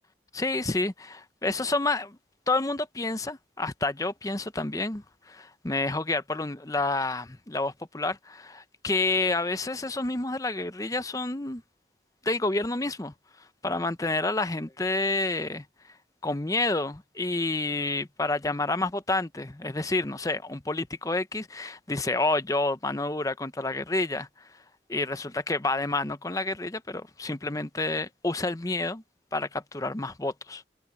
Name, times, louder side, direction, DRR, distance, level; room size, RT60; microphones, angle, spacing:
voice 1, 0.3-2.2 2.5-11.6 12.2-13.1 13.6-15.6 16.2-24.5 24.9-29.0 29.3-30.6, left 2 dB, 20° left, 0.8 m, -29 dB
head